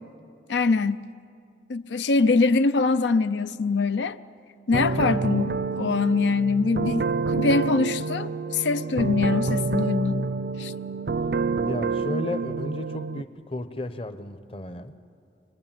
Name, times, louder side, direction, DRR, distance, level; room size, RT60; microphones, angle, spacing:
voice 1, 0.5-1.0 1.7-4.2 4.7-5.5 5.8-10.3 10.6-10.7, left 4 dB, 85° left, 0.5 m, -23 dB
sound 1, 4.7-13.2, right 4 dB, 60° right, 0.5 m, -28 dB
voice 2, 11.6-14.9, left 1 dB, 30° left, 0.8 m, -34 dB
24.5 x 20.5 x 9.0 m
head